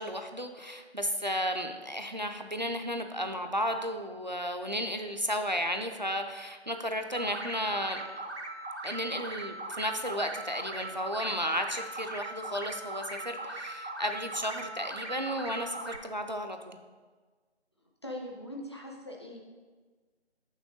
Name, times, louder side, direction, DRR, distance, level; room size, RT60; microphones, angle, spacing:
voice 1, 0.0-8.0 8.8-16.8, equal, 45° right, 6 dB, 0.4 m, -33 dB
sound 1, 7.2-16.0, right 2 dB, 80° right, 1.1 m, -40 dB
voice 2, 18.0-19.4, left 1 dB, 25° left, -1 dB, 0.6 m, -41 dB
6.6 x 6.0 x 3.9 m, 1.4 s
figure-of-eight pair, 160°, 34 cm